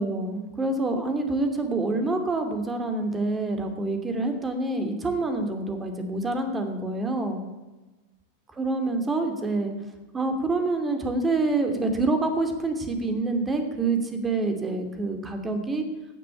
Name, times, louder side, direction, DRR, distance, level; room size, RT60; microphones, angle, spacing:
voice 1, 0.0-7.4 8.5-9.7 10.1-15.9, right 2 dB, 15° right, 6 dB, 2.6 m, -27 dB
14.5 x 10.0 x 9.0 m, 1.2 s
figure-of-eight pair, 90°, 0 cm